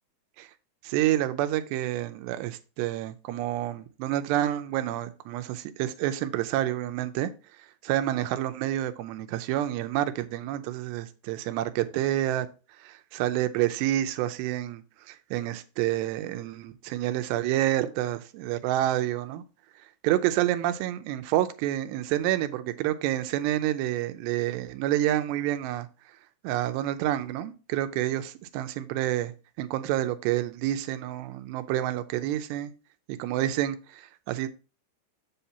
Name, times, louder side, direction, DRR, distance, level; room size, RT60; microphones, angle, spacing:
voice 1, 0.8-7.3 7.6-12.5 12.8-19.4 20.0-25.9 26.4-29.3 29.6-32.7 33.1-34.5, right 13 dB, 85° right, 2.7 m, -28 dB
7.8 x 6.8 x 2.8 m
omnidirectional pair, 5.0 m